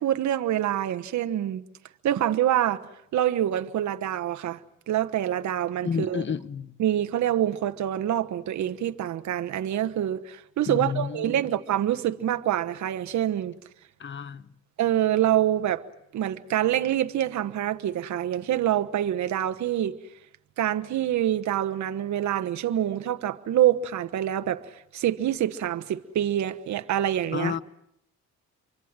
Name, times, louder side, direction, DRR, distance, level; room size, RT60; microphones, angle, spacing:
voice 1, 0.0-1.6 2.0-2.8 3.1-4.6 4.9-6.2 6.8-13.5 14.8-15.8 16.1-19.9 20.6-27.6, right 11 dB, 70° right, 1.2 m, -26 dB
voice 2, 5.8-6.7 10.7-11.3 14.0-14.4 27.3-27.6, left 7 dB, 40° left, 1.0 m, -30 dB
27.5 x 24.0 x 7.5 m
cardioid pair, 90°, 30 cm